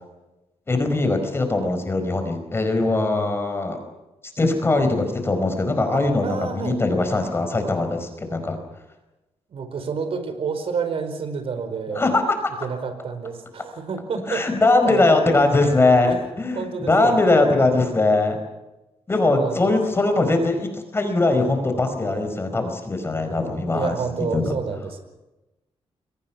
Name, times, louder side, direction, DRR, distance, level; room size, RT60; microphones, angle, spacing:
voice 1, 0.7-3.8 4.4-8.6 11.9-12.4 14.3-18.4 19.1-24.0 24.3-24.4, left 2 dB, 25° left, 6 dB, 4.8 m, -21 dB
voice 2, 5.9-6.8 9.5-12.0 12.6-14.4 14.8-15.4 16.0-16.2 16.5-17.2 19.2-19.8 23.7-25.0, right 5 dB, 65° right, 8 dB, 5.0 m, -29 dB
29.5 x 24.0 x 5.9 m, 1.0 s
wide cardioid pair, 160°, 10 cm